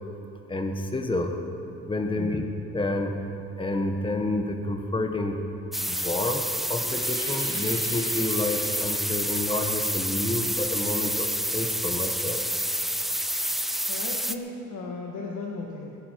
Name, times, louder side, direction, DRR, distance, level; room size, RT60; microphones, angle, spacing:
voice 1, 0.5-1.3 1.9-2.5 2.7-3.2 3.6-5.4 5.9-6.4 6.7-12.4, left 2 dB, 15° left, 4 dB, 1.3 m, -29 dB
voice 2, 2.2-2.5 13.3-13.6 13.8-16.0, left 3 dB, 70° left, -2 dB, 1.7 m, -36 dB
sound 1, 5.7-14.3, equal, ahead, 0.6 m, -28 dB
sound 2, 6.8-12.3, right 2 dB, 15° right, 3.3 m, -45 dB
21.5 x 10.5 x 4.6 m, 2.7 s
cardioid pair, 90°, 30 cm